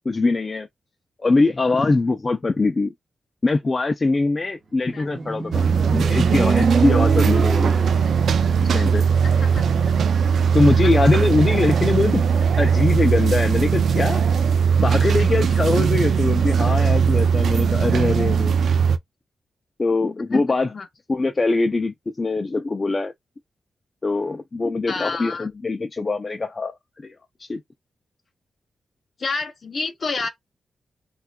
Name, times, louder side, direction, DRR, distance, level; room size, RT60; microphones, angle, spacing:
voice 1, 0.1-0.7 1.2-2.9 3.4-5.7 5.9-7.7 8.6-9.0 10.5-12.2 12.6-14.2 14.8-18.6 19.8-20.7 21.1-23.1 24.0-27.1 27.4-27.6, left 3 dB, 30° left, 0.3 m, -22 dB
Motorcycle, 4.8-8.3, right 4 dB, 35° right, 0.8 m, -25 dB
sound 1, 5.5-19.0, right 6 dB, 75° right, 0.4 m, -19 dB
voice 2, 9.2-9.9 10.8-11.1 20.3-20.9 24.9-25.5 29.2-30.3, left 4 dB, 45° left, 0.9 m, -30 dB
4.3 x 2.3 x 2.2 m
wide cardioid pair, 125°, 0 cm